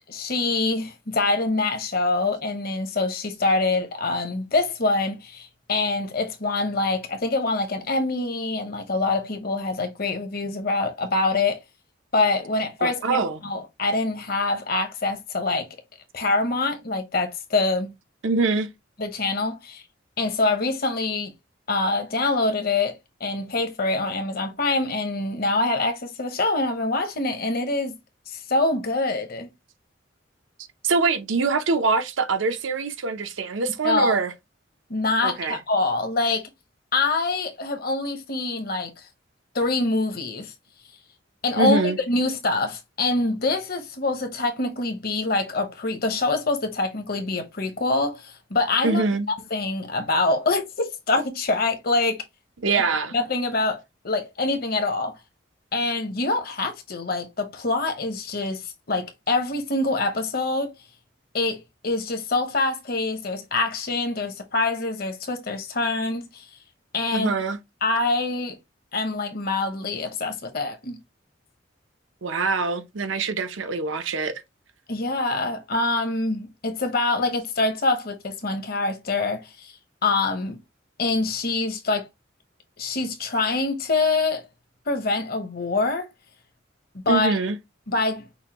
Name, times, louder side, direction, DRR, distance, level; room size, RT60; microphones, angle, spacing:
voice 1, 0.1-11.6 12.1-15.7 16.1-17.9 19.0-19.8 20.2-21.3 21.7-28.0 28.3-29.5 33.8-34.2 34.9-36.5 36.9-39.0 39.5-40.5 41.4-49.0 49.5-52.2 52.7-52.8 53.1-55.1 55.7-60.7 61.3-66.4 66.9-67.3 67.8-68.6 68.9-71.0 74.9-79.7 80.0-80.6 81.0-82.1 82.8-84.5 84.9-86.1 86.9-87.3 87.9-88.3, left 3 dB, 50° left, 1.0 m, -25 dB
voice 2, 12.8-13.4 18.2-18.7 30.8-34.3 35.2-35.6 41.6-42.0 48.8-49.3 52.6-53.1 67.1-67.6 72.2-74.4 87.1-87.6, right 4 dB, 80° right, 0.8 m, -24 dB
5.6 x 2.6 x 3.0 m
head